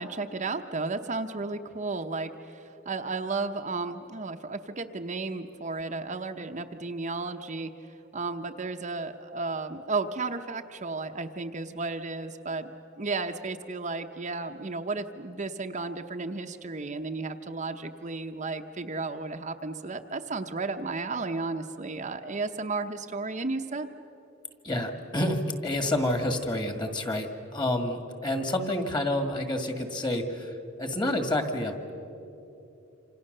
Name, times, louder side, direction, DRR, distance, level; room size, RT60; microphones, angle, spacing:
voice 1, 0.0-7.7 8.1-12.7 13.0-23.9, right 3 dB, 35° right, 5 dB, 0.8 m, -33 dB
voice 2, 24.6-30.5 30.8-31.9, left 1 dB, 20° left, 6 dB, 2.0 m, -29 dB
27.5 x 26.5 x 6.7 m, 2.9 s
head